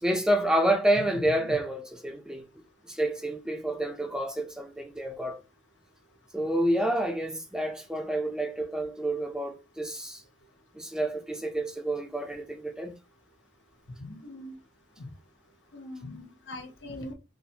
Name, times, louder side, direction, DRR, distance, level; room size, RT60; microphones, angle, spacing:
voice 1, 0.0-2.4 2.9-5.4 6.3-10.2 10.7-12.9, right 1 dB, 5° right, 0.5 m, -28 dB
voice 2, 14.0-14.5 15.0-15.1 15.7-17.1, left 1 dB, 80° left, 0.9 m, -41 dB
4.0 x 2.1 x 2.8 m
head